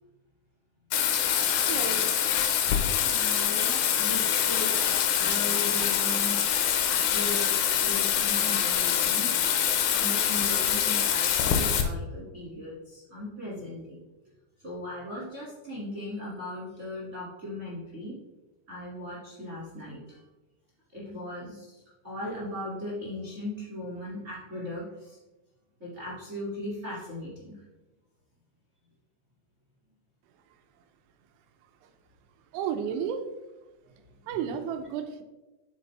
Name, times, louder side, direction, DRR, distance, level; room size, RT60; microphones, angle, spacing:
Bathtub (filling or washing), 0.9-11.8, left 9 dB, 90° left, 2.3 m, -25 dB
voice 1, 1.7-2.1 32.5-33.2 34.3-35.2, right 8 dB, 85° right, 7 dB, 2.7 m, -32 dB
voice 2, 3.0-4.9 5.2-6.4 6.9-7.5 7.8-9.4 9.9-14.0 14.6-18.1 18.7-20.2 20.9-21.7 22.0-25.2 25.8-27.6 34.3-34.4, left 1 dB, 55° right, -7 dB, 0.8 m, -38 dB
11.5 x 4.1 x 3.3 m, 1.1 s
omnidirectional pair, 5.8 m